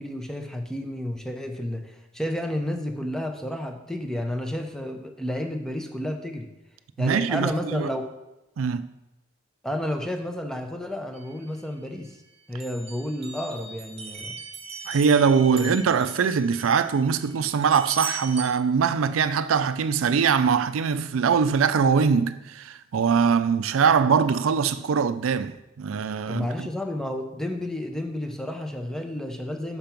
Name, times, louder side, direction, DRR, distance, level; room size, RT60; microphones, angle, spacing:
voice 1, 0.0-6.5 7.0-8.1 9.6-12.2 12.5-14.4 15.6-15.8 26.3-29.8, left 1 dB, 5° left, 0.6 m, -31 dB
voice 2, 7.0-7.9 8.6-8.8 14.9-26.7, right 6 dB, 80° right, 0.4 m, -22 dB
sound 1, 11.1-12.2 12.6-18.4, right 5 dB, 30° right, 0.8 m, -39 dB
5.7 x 5.2 x 5.8 m
head